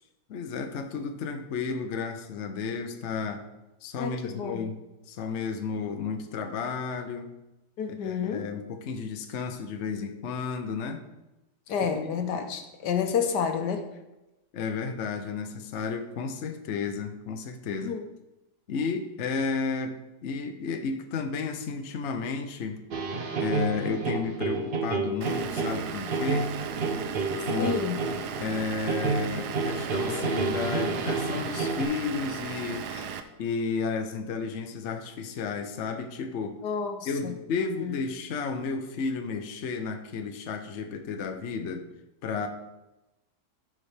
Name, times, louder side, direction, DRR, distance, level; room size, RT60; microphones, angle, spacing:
voice 1, 0.3-3.4 3.8-4.7 5.1-7.4 8.0-11.0 11.9-12.1 14.5-17.9 18.7-22.8 23.4-26.5 27.5-32.9 33.4-36.6 37.1-41.9 42.2-42.5, left 5 dB, 55° left, 5 dB, 0.8 m, -32 dB
voice 2, 4.0-4.7 7.8-8.5 11.7-13.9 17.7-18.0 27.6-28.0 32.9-33.0 36.6-38.0, left 6 dB, 75° left, 6 dB, 1.4 m, -30 dB
sound 1, 22.9-31.8, right 3 dB, 55° right, 0.6 m, -30 dB
Vehicle / Engine, 25.2-33.2, right 7 dB, 70° right, 1.2 m, -36 dB
14.0 x 4.9 x 3.4 m, 0.98 s
omnidirectional pair, 1.9 m